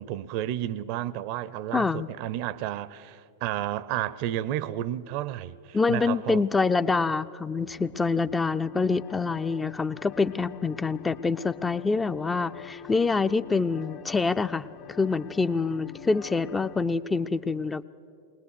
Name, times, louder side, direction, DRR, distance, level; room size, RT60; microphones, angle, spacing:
voice 1, 0.0-6.4, right 12 dB, 50° right, 0.5 m, -32 dB
voice 2, 1.7-2.1 5.7-17.8, left 4 dB, 15° left, 0.4 m, -26 dB
sound 1, 8.6-16.8, left 11 dB, 40° left, 1.1 m, -46 dB
21.5 x 19.5 x 6.7 m
figure-of-eight pair, 90°, 0 cm